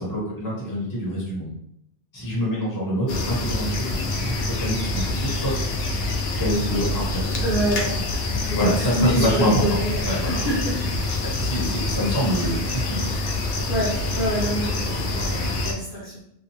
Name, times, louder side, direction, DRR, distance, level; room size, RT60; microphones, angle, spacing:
voice 1, 0.0-1.5 2.1-5.7 6.4-7.4 8.5-10.6 11.4-13.1, equal, 20° left, -5 dB, 0.8 m, -26 dB
sound 1, 3.1-15.7, left 2 dB, 80° left, 0.9 m, -26 dB
voice 2, 7.4-8.1 8.5-10.7 11.1-11.3 13.7-16.1, equal, 50° left, -6 dB, 0.8 m, -27 dB
2.8 x 2.3 x 2.6 m, 0.74 s
omnidirectional pair, 1.2 m